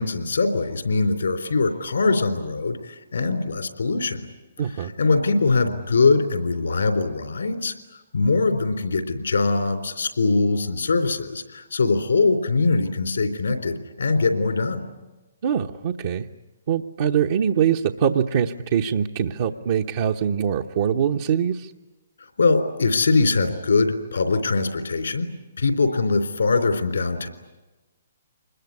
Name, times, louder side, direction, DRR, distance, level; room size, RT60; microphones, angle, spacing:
voice 1, 0.0-4.2 5.0-7.7 8.1-14.8 22.4-25.3 25.6-27.3, left 3 dB, 80° left, 6 dB, 3.6 m, -22 dB
voice 2, 4.6-4.9 15.4-16.3 16.7-21.7, right 8 dB, 55° right, 1 dB, 1.0 m, -23 dB
25.5 x 21.0 x 9.7 m, 1.1 s
figure-of-eight pair, 130°, 0 cm